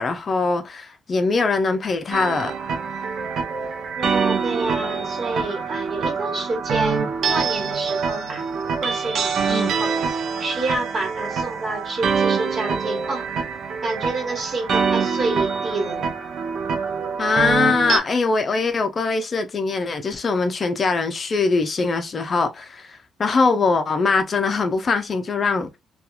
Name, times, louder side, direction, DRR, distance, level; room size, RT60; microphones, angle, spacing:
voice 1, 0.0-2.5 9.5-9.7 17.2-25.7, left 4 dB, 40° left, 0.5 m, -22 dB
sound 1, 2.1-18.0, right 5 dB, 70° right, 0.6 m, -25 dB
voice 2, 4.0-8.4 8.8-13.3 13.8-16.1, right 2 dB, 40° right, 1.4 m, -29 dB
2.8 x 2.3 x 2.3 m
cardioid pair, 90°, 0 cm